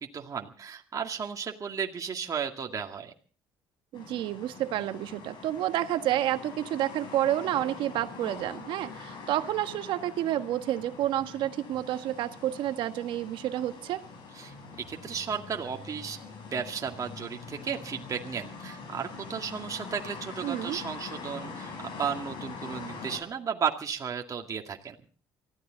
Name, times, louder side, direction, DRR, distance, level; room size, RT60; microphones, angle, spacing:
voice 1, 0.1-3.1 14.4-14.5 14.9-16.2 16.5-25.0, right 7 dB, 40° right, 2 dB, 2.1 m, -34 dB
sound 1, 3.9-23.2, left 4 dB, 65° left, 7.9 m, -44 dB
voice 2, 3.9-14.0 20.4-20.8, right 13 dB, 70° right, 9 dB, 1.5 m, -30 dB
24.0 x 15.0 x 4.0 m, 0.40 s
supercardioid pair, 70°, 9 cm